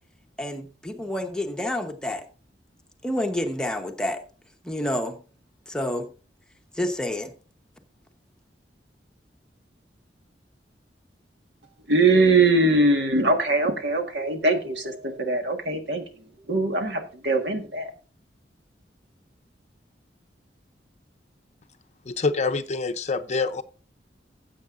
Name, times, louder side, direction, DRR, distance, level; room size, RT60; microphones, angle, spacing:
voice 1, 0.4-2.3 3.0-4.2 4.6-5.2 5.7-6.1 6.7-7.3, left 1 dB, 5° left, 1.0 m, -28 dB
voice 2, 11.9-16.0 16.5-17.9, right 2 dB, 80° right, 1.6 m, -22 dB
voice 3, 22.1-23.6, left 4 dB, 40° left, 0.6 m, -26 dB
15.5 x 7.7 x 2.5 m
head